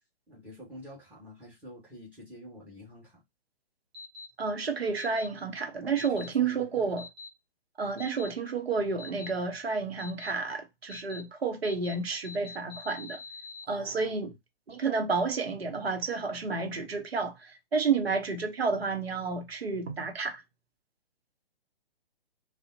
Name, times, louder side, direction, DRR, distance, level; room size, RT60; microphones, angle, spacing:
voice 1, 0.3-3.2 6.0-6.9 13.6-14.3, equal, 5° right, 1.3 m, -49 dB
sound 1, 3.9-4.3 5.0-5.3 6.0-6.3 7.0-7.3 8.0-8.3 9.0-9.3 10.0-10.3 10.9-11.2 11.6-11.9 12.2-13.6, left 4 dB, 45° right, 1.1 m, -44 dB
voice 2, 4.4-7.1 7.8-13.2 13.7-14.3 14.7-20.4, right 4 dB, 80° right, 0.8 m, -30 dB
3.6 x 2.1 x 2.6 m
figure-of-eight pair, 125°, 30 cm